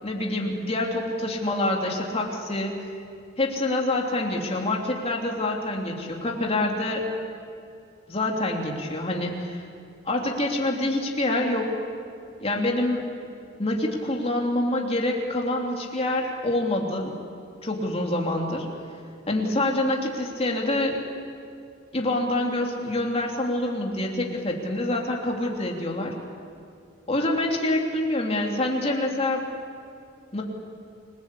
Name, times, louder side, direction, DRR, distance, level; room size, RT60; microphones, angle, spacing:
voice 1, 0.0-2.7 3.4-7.0 8.1-9.6 10.0-11.9 12.4-13.1 13.6-17.1 17.6-18.7 19.3-21.0 21.9-26.1 27.1-29.5 30.3-30.4, left 1 dB, 30° left, 0 dB, 3.2 m, -26 dB
29.0 x 21.0 x 8.4 m, 2.5 s
head